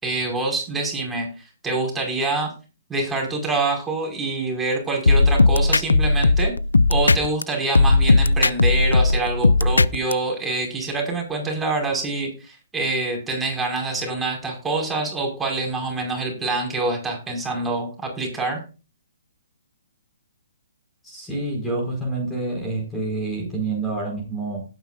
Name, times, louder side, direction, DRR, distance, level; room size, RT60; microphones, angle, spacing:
voice 1, 0.0-1.3 1.6-2.5 2.9-6.5 6.9-18.6, right 2 dB, 10° right, 0 dB, 5.3 m, -26 dB
sound 1, 5.1-7.4 7.7-10.1, left 3 dB, 85° left, 0.5 m, -16 dB
voice 2, 21.0-24.6, right 2 dB, 10° left, -1 dB, 4.6 m, -27 dB
17.5 x 9.5 x 2.6 m, 0.32 s
hypercardioid pair, 135°, 0 cm